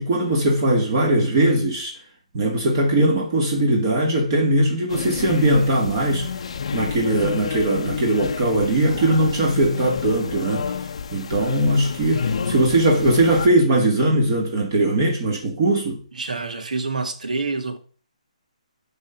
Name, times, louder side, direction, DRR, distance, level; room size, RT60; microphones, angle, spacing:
voice 1, 0.0-2.0 2.3-6.3 6.7-10.7 11.1-16.0, right 1 dB, 30° right, 1.7 m, -20 dB
sound 1, 4.9-13.5, left 6 dB, 50° left, 0.7 m, -29 dB
voice 2, 16.1-17.8, right 3 dB, 80° right, 1.9 m, -27 dB
11.5 x 3.8 x 5.7 m
hypercardioid pair, 170°, 4 cm